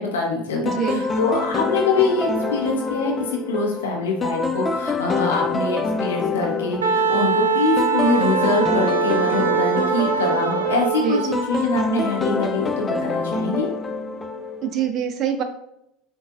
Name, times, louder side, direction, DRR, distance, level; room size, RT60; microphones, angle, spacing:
voice 1, 0.0-13.7, left 3 dB, 80° left, 0 dB, 1.0 m, -24 dB
voice 2, 0.6-1.0 11.0-11.2 14.6-15.4, right 8 dB, 50° right, 7 dB, 0.6 m, -24 dB
sound 1, 0.7-14.9, left 3 dB, 25° left, 0.4 m, -26 dB
Wind instrument woodwind instrument, 6.8-11.4, right 6 dB, 90° right, 0.4 m, -22 dB
6.7 x 2.7 x 2.4 m, 0.80 s
hypercardioid pair, 80°, 0 cm